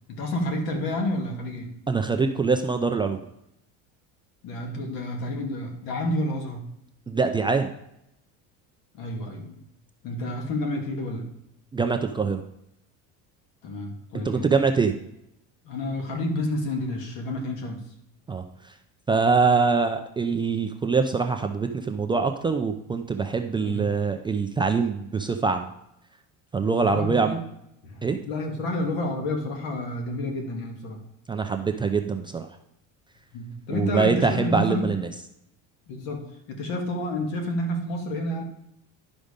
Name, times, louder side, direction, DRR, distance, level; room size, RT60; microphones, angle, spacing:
voice 1, 0.1-1.7 4.4-6.7 8.9-9.6 10.0-11.3 13.6-14.5 15.6-17.8 23.6-24.0 26.6-27.5 27.8-31.0 33.3-34.9 35.9-38.4, left 1 dB, 70° left, 3 dB, 2.3 m, -30 dB
voice 2, 1.9-3.2 7.1-7.7 11.7-12.4 14.2-14.9 18.3-18.4 19.1-25.7 26.5-27.4 28.0-28.2 31.3-32.5 33.7-35.1, right 4 dB, 15° right, 5 dB, 0.4 m, -24 dB
11.0 x 5.2 x 5.1 m, 0.80 s
cardioid pair, 145°, 36 cm